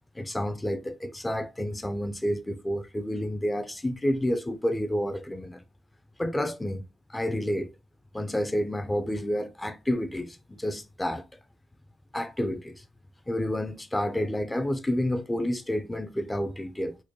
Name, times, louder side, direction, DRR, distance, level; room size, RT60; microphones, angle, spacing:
voice 1, 0.1-5.6 6.2-7.7 8.1-11.2 12.1-12.8 13.3-17.0, left 1 dB, 10° left, 0.4 m, -29 dB
4.4 x 2.2 x 3.0 m
cardioid pair, 90°, 0 cm